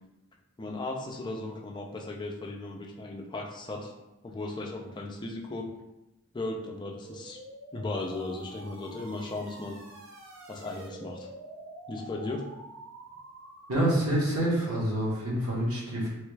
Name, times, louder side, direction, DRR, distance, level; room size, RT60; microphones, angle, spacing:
voice 1, 0.6-3.9 4.2-5.7 6.3-7.4 7.7-9.8 10.5-11.3 11.9-12.5, left 2 dB, 20° left, 1 dB, 0.3 m, -36 dB
sound 1, 7.1-14.5, right 2 dB, 65° right, 0.5 m, -47 dB
voice 2, 13.7-16.1, right 1 dB, 90° right, -5 dB, 1.1 m, -27 dB
3.1 x 2.2 x 3.2 m, 0.96 s
head